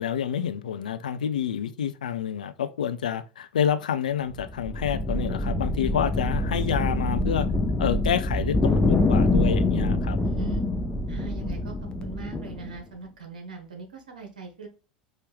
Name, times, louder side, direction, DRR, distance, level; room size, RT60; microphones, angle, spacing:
voice 1, 0.0-7.5 7.8-10.2, left 8 dB, 70° left, 0.4 m, -28 dB
sound 1, 4.4-12.8, left 2 dB, 15° left, 0.6 m, -25 dB
voice 2, 10.2-10.7 11.1-14.7, right 4 dB, 75° right, 1.2 m, -40 dB
4.9 x 2.7 x 3.3 m
figure-of-eight pair, 80°, 4 cm